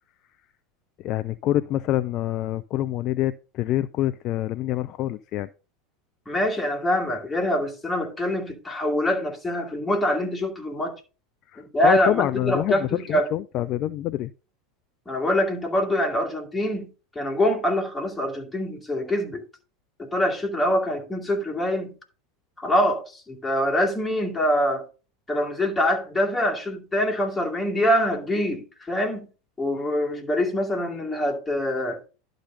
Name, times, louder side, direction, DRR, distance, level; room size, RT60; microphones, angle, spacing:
voice 1, 1.0-5.5 11.5-14.3, left 13 dB, 45° left, 0.3 m, -26 dB
voice 2, 6.3-10.9 11.6-13.3 15.1-16.9 17.1-19.4 20.0-21.9 22.6-24.9 25.3-29.3 29.6-32.0, left 1 dB, 10° left, 2.4 m, -24 dB
11.5 x 3.9 x 5.4 m
figure-of-eight pair, 80°, 0 cm